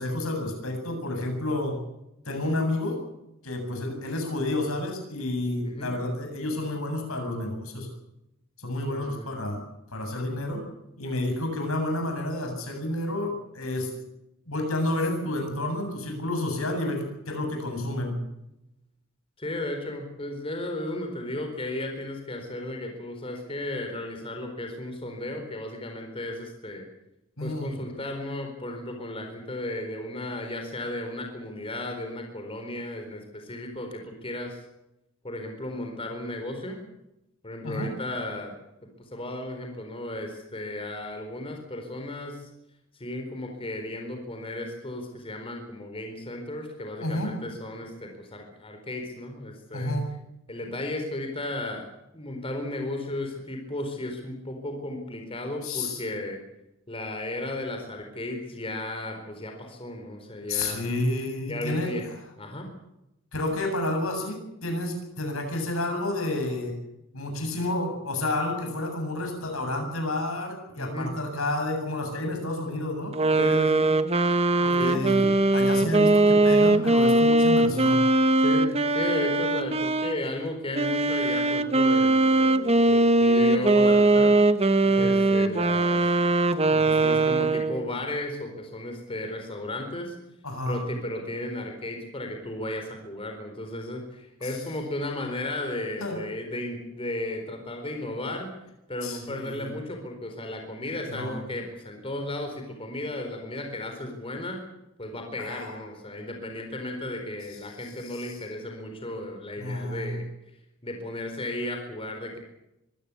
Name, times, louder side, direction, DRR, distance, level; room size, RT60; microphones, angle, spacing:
voice 1, 0.0-1.8 2.3-3.0 3.4-7.9 8.6-9.6 9.9-10.6 11.0-13.9 14.5-18.2 27.4-27.7 37.6-37.9 47.0-47.3 49.7-50.1 55.6-56.0 60.5-61.9 63.3-66.7 67.1-73.2 74.6-75.3 75.5-78.0 84.8-85.1 90.4-90.9 94.4-94.6 96.0-96.2 99.0-99.7 101.1-101.4 105.4-105.8 107.8-108.4 109.6-110.2, left 1 dB, 85° left, 4 dB, 7.9 m, -30 dB
voice 2, 8.9-9.3 19.4-26.8 27.4-34.6 35.2-36.8 37.4-38.5 39.0-42.5 42.9-49.9 50.5-51.9 52.1-56.4 56.9-60.9 61.5-62.1 62.4-62.7 70.8-71.1 73.4-73.9 74.8-75.0 78.4-84.4 85.0-86.0 86.7-90.2 90.7-98.5 98.9-104.6 105.0-110.2 110.8-112.4, left 1 dB, 25° left, 4 dB, 4.3 m, -34 dB
sound 1, 73.1-80.2 80.7-87.9, right 2 dB, 30° right, 1.2 m, -21 dB
24.5 x 16.0 x 8.5 m, 0.88 s
head